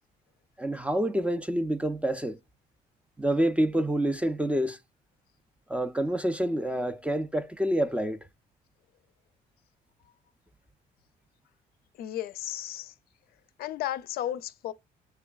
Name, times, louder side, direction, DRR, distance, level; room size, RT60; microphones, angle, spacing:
voice 1, 0.6-2.4 3.2-4.8 5.7-8.2, right 1 dB, 5° right, 0.3 m, -27 dB
voice 2, 12.0-12.9 13.6-14.7, left 12 dB, 65° left, 0.4 m, -34 dB
6.5 x 3.0 x 2.3 m
cardioid pair, 110°, 17 cm